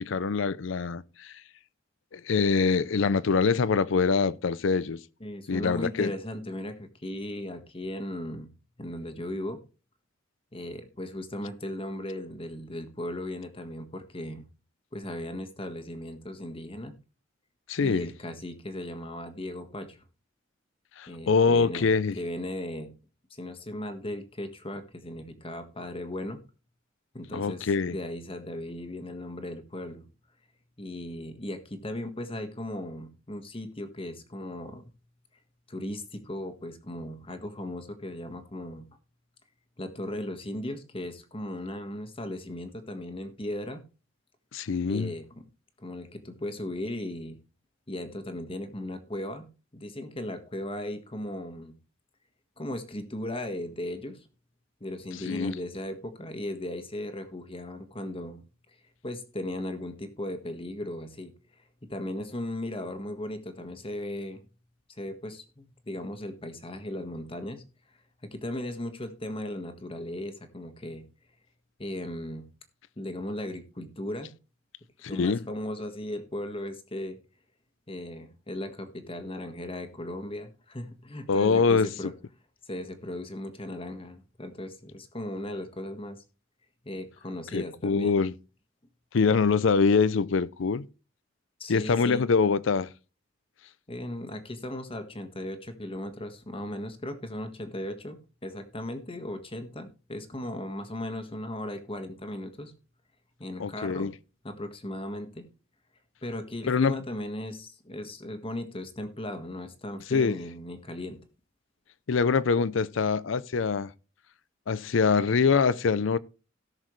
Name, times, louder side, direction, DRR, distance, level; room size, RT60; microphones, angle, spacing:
voice 1, 0.0-1.4 2.1-5.0 5.5-6.1 17.7-18.1 21.0-22.2 27.3-28.0 44.5-45.1 55.3-55.5 75.0-75.4 81.3-82.1 87.5-88.3 89.1-90.9 91.7-92.9 103.6-104.1 106.7-106.9 110.1-110.4 112.1-113.9 114.7-116.2, left 5 dB, 70° left, 0.5 m, -24 dB
voice 2, 5.2-8.5 8.8-9.6 10.5-14.5 14.9-16.9 17.8-20.0 21.1-21.9 22.2-22.9 23.3-26.4 27.1-30.0 30.8-34.9 35.7-38.9 39.8-43.8 44.9-45.4 45.8-47.4 47.9-49.5 49.7-51.7 52.6-54.2 54.8-58.4 59.0-61.3 61.8-64.4 65.0-67.6 68.2-71.0 71.8-72.4 73.0-74.3 75.1-77.2 77.9-82.1 82.7-86.2 86.8-88.1 91.6-92.3 93.9-102.7 103.4-104.1 104.4-105.5 106.2-111.2, left 1 dB, 30° left, 1.5 m, -37 dB
17.5 x 6.4 x 3.2 m
head